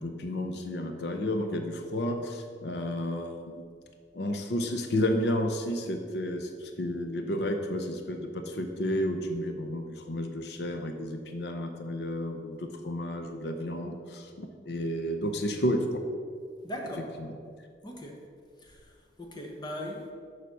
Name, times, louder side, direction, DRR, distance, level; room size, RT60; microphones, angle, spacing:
voice 1, 0.0-3.6 4.1-15.9 17.2-17.3, left 1 dB, 65° left, 5 dB, 0.6 m, -31 dB
voice 2, 16.6-17.1 17.8-18.3 18.6-20.1, left 1 dB, 25° left, 1 dB, 1.0 m, -39 dB
6.9 x 5.0 x 6.1 m, 2.1 s
head